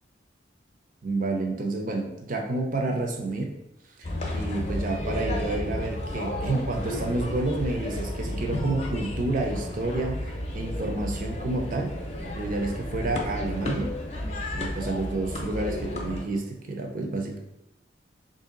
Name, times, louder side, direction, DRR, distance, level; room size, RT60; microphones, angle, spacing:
voice 1, 1.0-3.5 4.0-4.1 4.3-11.9 12.3-14.0 14.5-17.4, right 2 dB, 45° right, 2 dB, 0.5 m, -29 dB
sound 1, 4.0-16.2, left 1 dB, 35° left, 0.6 m, -32 dB
3.2 x 2.7 x 3.7 m, 0.88 s
head